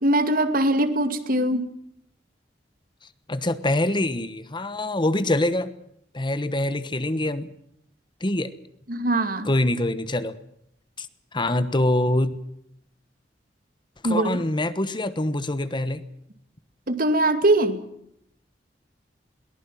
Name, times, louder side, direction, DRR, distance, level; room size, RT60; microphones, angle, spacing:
voice 1, 0.0-1.7 8.9-9.5 14.0-14.3 16.9-17.8, right 1 dB, 55° right, 9 dB, 2.3 m, -21 dB
voice 2, 3.3-5.7 6.1-7.5 8.2-8.5 9.5-10.4 11.0-11.1 11.3-12.3 14.0-16.0, left 1 dB, 25° left, 13 dB, 1.2 m, -24 dB
22.0 x 19.0 x 7.4 m, 0.73 s
head